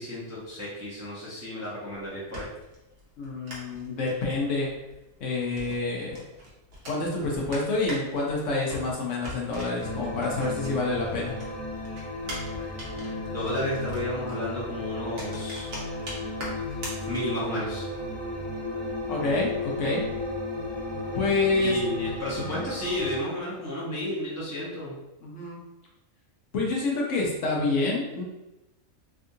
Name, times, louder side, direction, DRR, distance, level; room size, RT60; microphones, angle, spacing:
voice 1, 0.0-2.5 12.4-15.7 17.1-17.8 21.6-24.9, left 1 dB, 15° right, -9 dB, 0.8 m, -32 dB
sound 1, 2.0-11.1 11.4-17.6, equal, 65° right, 1.2 m, -42 dB
voice 2, 3.2-4.7 5.2-6.2 6.9-11.4 19.1-20.1 21.1-21.8 22.4-22.6 25.2-25.6 26.5-28.2, left 3 dB, 65° left, -3 dB, 1.1 m, -27 dB
sound 2, 9.8-23.2, left 2 dB, 35° right, 1.3 m, -34 dB
3.4 x 2.5 x 2.7 m, 0.94 s
omnidirectional pair, 1.4 m